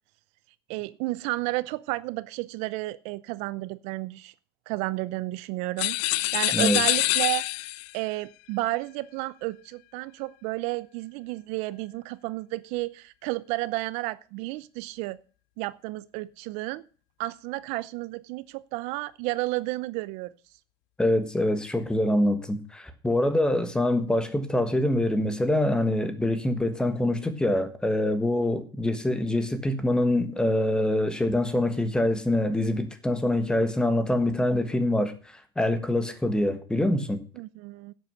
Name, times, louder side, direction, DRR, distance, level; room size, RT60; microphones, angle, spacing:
voice 1, 0.7-4.3 4.7-7.4 7.9-15.2 15.6-16.8 17.2-20.3 37.4-37.9, right 20 dB, 55° right, 0.6 m, -32 dB
sound 1, 5.8-7.9, left 21 dB, 55° left, 0.5 m, -25 dB
voice 2, 21.0-37.2, left 1 dB, 5° left, 1.4 m, -25 dB
11.0 x 8.0 x 6.6 m
supercardioid pair, 140°, 13 cm